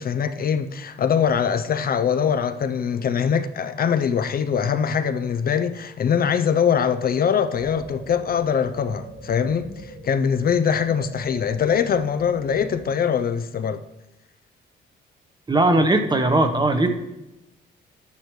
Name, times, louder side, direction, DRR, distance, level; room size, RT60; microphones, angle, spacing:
voice 1, 0.0-13.8, left 7 dB, 50° left, 0.6 m, -22 dB
sound 1, 7.5-12.9, right 2 dB, 90° right, 3.8 m, -41 dB
voice 2, 15.5-16.9, right 2 dB, 20° right, 1.1 m, -19 dB
10.0 x 9.4 x 3.2 m
cardioid pair, 90°, 20 cm